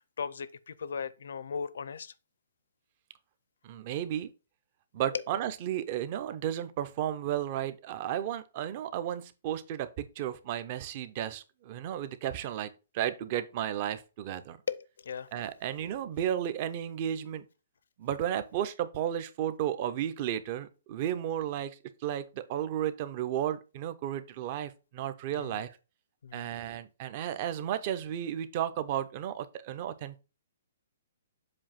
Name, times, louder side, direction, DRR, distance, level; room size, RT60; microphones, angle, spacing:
voice 1, 0.0-2.1 5.1-5.2 14.7-15.3 25.3-25.6 26.2-26.5, left 6 dB, 70° left, 0.5 m, -37 dB
voice 2, 3.6-4.3 4.9-14.6 15.3-17.5 18.0-25.7 26.3-30.2, right 10 dB, 25° right, 0.5 m, -33 dB
7.4 x 2.6 x 5.7 m
hypercardioid pair, 180°, 0 cm